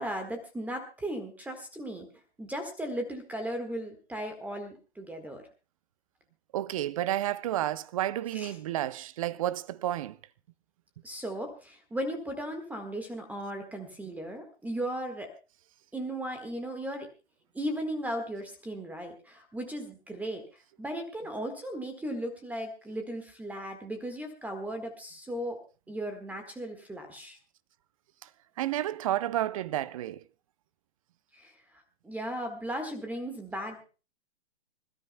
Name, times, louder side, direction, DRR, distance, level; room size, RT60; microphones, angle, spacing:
voice 1, 0.0-2.1 2.4-5.5 8.3-8.5 11.0-15.3 15.9-17.1 17.5-20.4 20.8-25.6 25.9-27.4 31.4-31.5 32.0-33.8, right 1 dB, 5° right, 1.5 m, -36 dB
voice 2, 6.5-10.2 28.6-30.2, right 13 dB, 30° right, 0.6 m, -31 dB
26.0 x 13.5 x 2.2 m
figure-of-eight pair, 130°, 34 cm